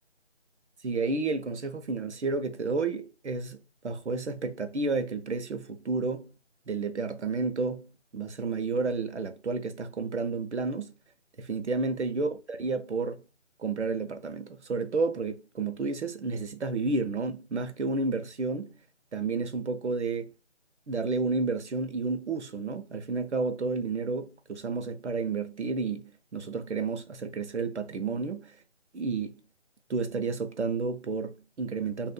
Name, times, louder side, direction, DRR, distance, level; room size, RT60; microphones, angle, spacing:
voice 1, 0.8-6.3 6.7-10.9 11.4-13.2 13.6-18.7 19.1-20.3 20.9-28.6 28.9-29.4 29.9-32.1, right 4 dB, 75° right, 0.8 m, -31 dB
5.5 x 2.5 x 2.2 m
figure-of-eight pair, 170°, 35 cm